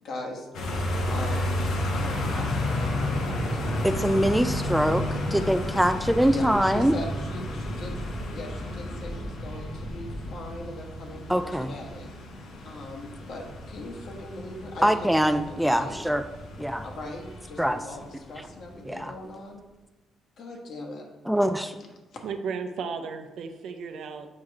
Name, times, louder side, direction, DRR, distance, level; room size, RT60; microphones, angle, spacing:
voice 1, 0.0-0.5 1.1-1.6 1.9-4.0 6.2-8.0 8.3-12.1 12.6-15.9 16.8-19.6 20.4-21.0 22.1-22.2, left 2 dB, 65° left, 1 dB, 1.5 m, -40 dB
sound 1, 0.5-19.1, left 1 dB, 85° left, 1.3 m, -32 dB
voice 2, 3.8-5.0 5.3-6.9 11.3-11.7 14.8-16.2 16.6-16.9 17.6-17.8 18.9-19.1 21.3-21.7, equal, ahead, 8 dB, 0.3 m, -23 dB
sound 2, 3.9-10.3, equal, 35° left, 0.9 m, -40 dB
voice 3, 22.2-24.3, right 5 dB, 75° right, 7 dB, 0.6 m, -34 dB
7.4 x 4.8 x 3.6 m, 1.1 s
cardioid pair, 90°, 0 cm